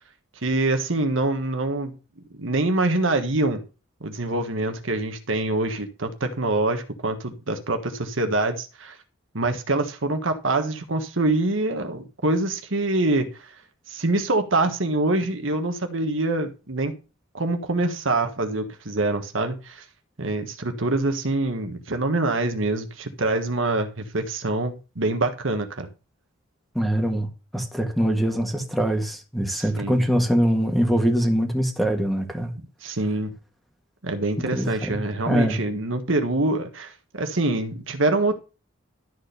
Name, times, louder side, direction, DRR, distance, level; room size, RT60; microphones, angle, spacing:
voice 1, 0.4-2.0 2.4-3.6 4.0-9.0 9.3-13.5 13.9-16.9 17.3-19.8 20.2-25.9 29.5-30.0 32.8-33.3 34.0-38.4, right 2 dB, 70° right, 1.5 m, -25 dB
voice 2, 26.8-32.5 34.5-35.0 35.3-35.6, equal, ahead, 1.8 m, -23 dB
12.5 x 4.4 x 6.8 m
head